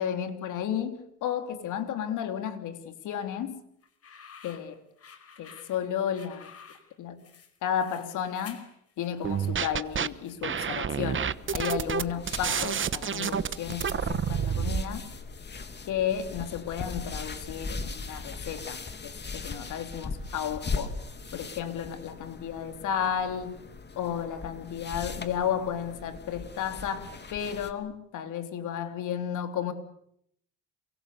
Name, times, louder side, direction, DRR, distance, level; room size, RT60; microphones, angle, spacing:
voice 1, 0.0-3.6 4.4-4.8 5.4-6.5 7.0-7.2 7.6-8.6 9.0-15.0 15.9-20.9 21.3-23.6 24.0-29.7, left 9 dB, 85° left, 8 dB, 3.4 m, -33 dB
sound 1, 3.8-11.4, left 6 dB, 50° left, 5.1 m, -52 dB
sound 2, 9.2-10.1 10.4-14.8, right 7 dB, 40° right, 1.1 m, -29 dB
sound 3, 11.0-27.7, left 4 dB, 35° left, 2.9 m, -39 dB
28.0 x 24.5 x 6.9 m, 0.72 s
cardioid pair, 90°, 30 cm